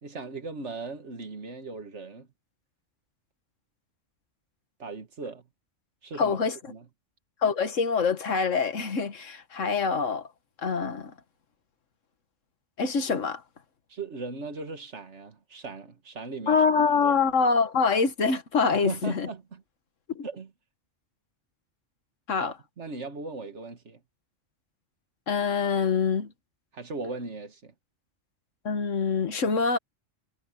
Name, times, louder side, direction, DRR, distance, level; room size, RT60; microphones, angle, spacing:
voice 1, 0.0-2.3 4.8-5.5 6.0-6.4 6.7-6.9 13.9-16.6 17.0-17.2 18.7-19.6 20.2-20.5 22.4-24.0 26.7-27.7, right 3 dB, 65° right, 2.0 m, -38 dB
voice 2, 6.2-6.6 7.4-10.3 10.6-11.1 12.8-13.4 16.5-19.3 20.2-20.3 22.3-22.5 25.3-26.3 28.7-29.8, left 5 dB, 90° left, 1.8 m, -25 dB
omnidirectional pair, 1.3 m